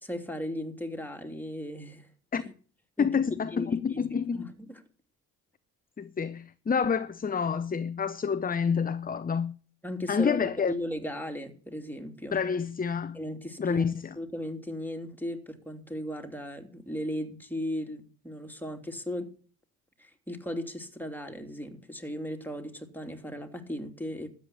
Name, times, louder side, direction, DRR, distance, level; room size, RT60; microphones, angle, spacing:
voice 1, 0.0-2.1 2.3-2.5 3.0-4.8 9.8-12.4 13.1-19.3 20.0-24.3, left 1 dB, 5° left, 3.1 m, -37 dB
voice 2, 3.0-4.5 6.0-9.5 10.1-10.7 12.3-13.2 13.6-14.2, left 6 dB, 20° left, 0.8 m, -28 dB
13.0 x 8.5 x 8.4 m
hypercardioid pair, 45°, 40 cm